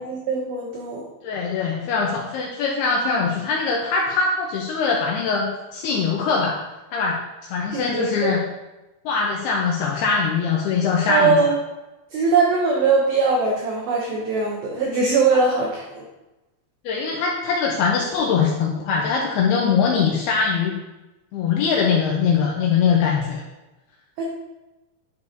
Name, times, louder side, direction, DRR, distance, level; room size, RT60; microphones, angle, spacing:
voice 1, 0.0-1.1 7.7-8.3 11.1-11.6 12.1-16.1 24.2-24.3, right 4 dB, 85° right, -1 dB, 2.1 m, -21 dB
voice 2, 1.2-6.6 6.9-8.4 9.1-11.4 16.8-20.8 21.3-23.4, left 5 dB, 85° left, -2 dB, 2.4 m, -22 dB
10.5 x 6.4 x 2.8 m, 1.0 s
omnidirectional pair, 5.5 m